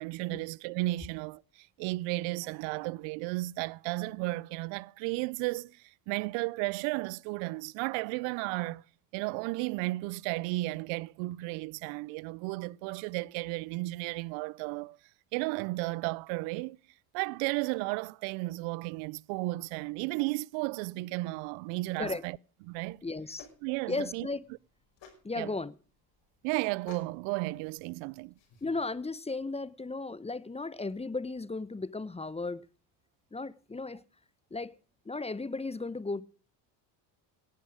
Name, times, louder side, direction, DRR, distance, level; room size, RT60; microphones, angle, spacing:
voice 1, 0.0-8.8 9.1-15.0 15.3-16.8 17.1-22.4 22.7-23.0 23.6-24.3 25.4-25.5 26.4-28.3, right 22 dB, 65° right, 0.6 m, -34 dB
sound 1, 22.8-28.9, left 6 dB, 60° left, 5.8 m, -56 dB
voice 2, 23.0-23.5 23.9-24.4 25.2-25.7 28.6-32.6 33.3-34.0 34.5-34.7 35.1-36.2, left 3 dB, 10° left, 0.9 m, -35 dB
17.5 x 12.0 x 4.9 m
hypercardioid pair, 65°, 49 cm